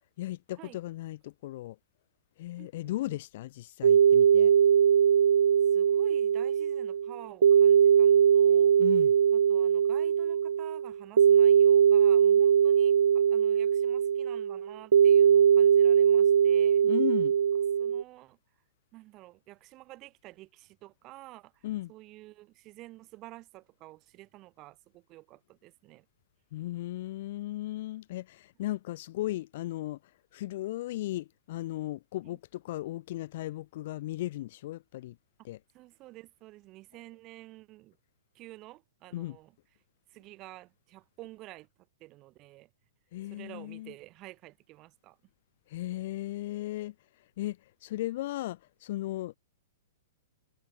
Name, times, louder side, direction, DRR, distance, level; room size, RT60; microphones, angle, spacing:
voice 1, 0.2-1.8 2.4-4.5 8.8-9.1 16.8-17.3 21.6-21.9 26.5-30.0 30.3-35.2 35.4-35.6 39.1-39.4 43.1-43.9 45.7-46.9 47.4-49.4, left 16 dB, 50° left, 1.2 m, -36 dB
voice 2, 2.6-3.2 5.6-8.8 9.3-16.9 17.8-18.4 18.9-26.1 32.2-32.4 35.7-38.0 38.3-39.5 40.1-41.7 42.0-42.7 43.2-45.2, right 18 dB, 30° right, 6.6 m, -50 dB
sound 1, 3.8-18.0, right 8 dB, 85° right, 0.5 m, -21 dB
hypercardioid pair, 150°, 0 cm